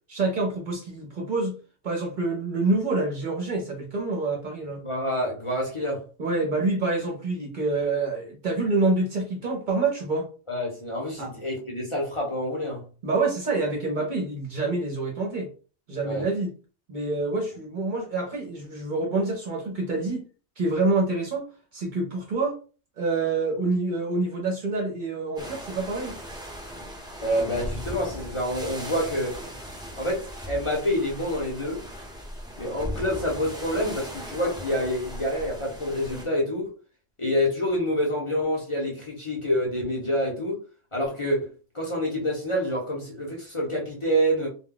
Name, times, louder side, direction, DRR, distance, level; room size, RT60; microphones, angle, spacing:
voice 1, 0.1-1.6 1.8-4.9 6.2-10.3 11.2-11.3 13.0-15.5 15.9-16.5 16.9-20.2 20.6-21.5 21.7-22.6 23.0-26.2, right 3 dB, 50° right, 0.7 m, -27 dB
voice 2, 4.8-6.0 10.5-12.9 16.0-16.3 27.2-29.4 30.0-31.8 32.6-36.7 37.2-40.6 40.9-41.5 41.7-44.5, equal, 30° left, 0.7 m, -27 dB
sound 1, 25.4-36.2, equal, 5° right, 0.6 m, -38 dB
2.2 x 2.2 x 3.7 m
omnidirectional pair, 1.1 m